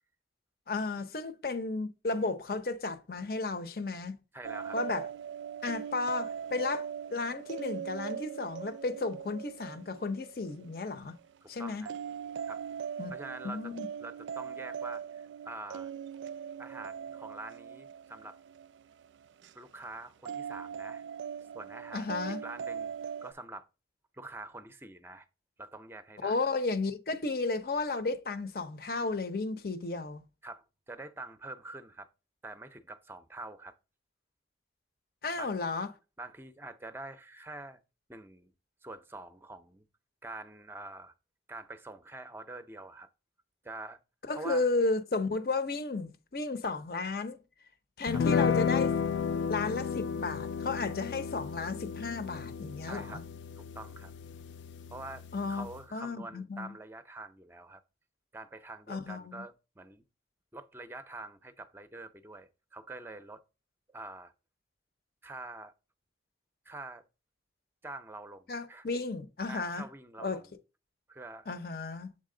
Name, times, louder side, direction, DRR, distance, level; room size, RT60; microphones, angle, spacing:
voice 1, 0.7-4.2 4.7-5.0 5.6-11.2 11.5-11.8 13.0-13.1 13.4-13.9 21.9-22.4 26.2-30.2 35.2-35.9 44.3-47.4 48.0-48.9 49.5-53.2 55.3-56.8 58.9-59.4 68.5-69.8 70.2-70.4 71.5-72.1, left 3 dB, 55° left, 0.7 m, -33 dB
voice 2, 4.3-4.8 11.4-11.9 12.5-12.6 13.1-13.7 14.0-15.9 16.6-18.4 19.5-21.0 21.5-23.0 23.2-23.7 24.1-25.3 25.6-26.5 30.4-32.1 32.4-33.8 35.4-35.5 36.2-37.8 38.1-38.5 38.8-39.9 40.2-41.1 41.5-43.1 43.6-44.0 44.3-44.7 48.1-48.2 52.8-53.2 53.6-54.1 54.9-57.8 58.3-60.0 60.5-63.4 63.9-64.3 65.2-65.7 66.7-67.0 67.8-68.9 69.5-70.5 71.1-71.5, right 2 dB, 10° right, 0.5 m, -45 dB
sound 1, 4.4-11.3 11.9-19.5 20.3-23.3, right 7 dB, 85° right, 0.3 m, -41 dB
sound 2, 48.1-55.8, left 6 dB, 80° left, 0.3 m, -33 dB
7.5 x 4.1 x 3.7 m
head